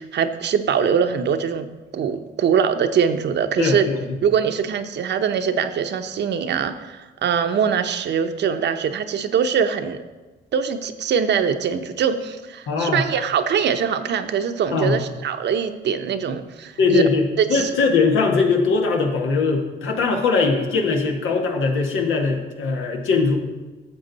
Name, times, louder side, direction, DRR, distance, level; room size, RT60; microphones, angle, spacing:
voice 1, 0.0-1.7 1.9-3.9 4.2-10.0 10.5-17.0 17.4-17.7, right 7 dB, 60° right, 8 dB, 0.8 m, -22 dB
voice 2, 3.6-4.2 12.7-13.0 14.7-15.0 16.8-23.4, left 4 dB, 80° left, 2 dB, 1.6 m, -21 dB
12.5 x 7.4 x 4.1 m, 1.2 s
cardioid pair, 90°, 20 cm